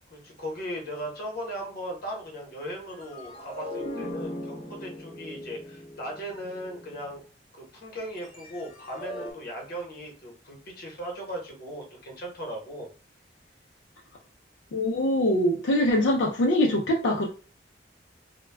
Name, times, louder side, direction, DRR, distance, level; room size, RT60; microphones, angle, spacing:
voice 1, 0.1-7.2 7.5-12.9, equal, 55° left, 0 dB, 0.9 m, -38 dB
sound 1, 2.9-7.2 8.2-9.3, left 1 dB, 30° left, 0.6 m, -39 dB
voice 2, 14.7-17.2, left 1 dB, 80° left, -1 dB, 0.4 m, -23 dB
2.2 x 2.1 x 3.3 m, 0.37 s
head